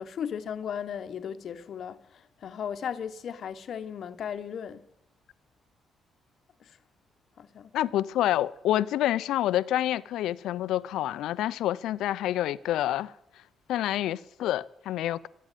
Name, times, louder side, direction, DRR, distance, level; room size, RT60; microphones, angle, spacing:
voice 1, 0.0-4.9 6.6-6.8 7.4-7.7, left 8 dB, 60° left, 0.9 m, -36 dB
voice 2, 7.7-13.1 13.7-15.3, left 13 dB, 85° left, 0.5 m, -28 dB
14.0 x 8.6 x 9.0 m
cardioid pair, 90°, 0 cm